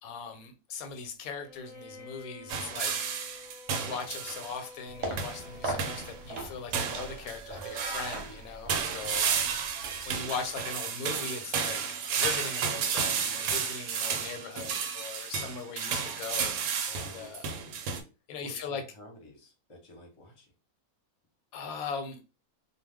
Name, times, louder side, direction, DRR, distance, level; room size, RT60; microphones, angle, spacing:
voice 1, 0.0-2.9 3.7-9.3 10.1-11.8 12.1-16.5 16.8-17.4 18.3-18.8 21.5-22.2, left 5 dB, 80° left, 1.0 m, -39 dB
Bowed string instrument, 1.3-6.5, left 2 dB, 5° right, 0.4 m, -50 dB
sound 1, 2.5-4.6 5.2-5.5 5.8-6.2 6.7-8.3 8.7-18.0, right 6 dB, 80° right, 1.0 m, -32 dB
sound 2, 4.9-10.5, right 2 dB, 55° right, 0.9 m, -40 dB
voice 2, 8.0-8.4 17.0-17.3 18.4-20.5, left 1 dB, 30° left, 0.7 m, -51 dB
2.3 x 2.2 x 3.4 m
omnidirectional pair, 1.5 m